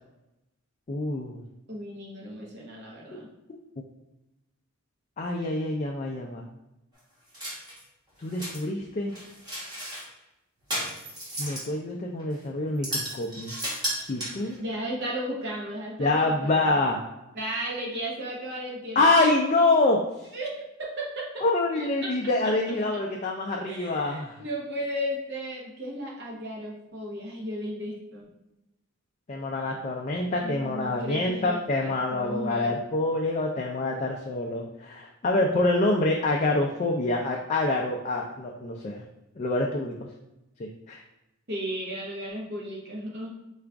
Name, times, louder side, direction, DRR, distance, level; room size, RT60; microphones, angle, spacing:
voice 1, 0.9-1.4 5.2-6.4 8.2-9.1 11.4-13.5 14.1-14.6 16.0-17.0 19.0-20.0 21.4-24.4 29.3-39.0 39.4-39.9 40.6-41.0, left 2 dB, 35° left, 0 dB, 0.3 m, -26 dB
voice 2, 1.7-3.3 14.6-16.8 17.3-19.0 20.3-20.5 20.8-21.4 22.9-23.0 23.7-28.3 30.4-32.8 41.5-43.3, equal, 50° right, -2 dB, 0.8 m, -35 dB
sound 1, 7.3-7.8 8.2-8.6 9.1-10.0 10.7-11.7 12.2-12.3 12.8-14.6, equal, 20° right, 1.3 m, -34 dB
4.8 x 2.4 x 3.4 m, 0.93 s
head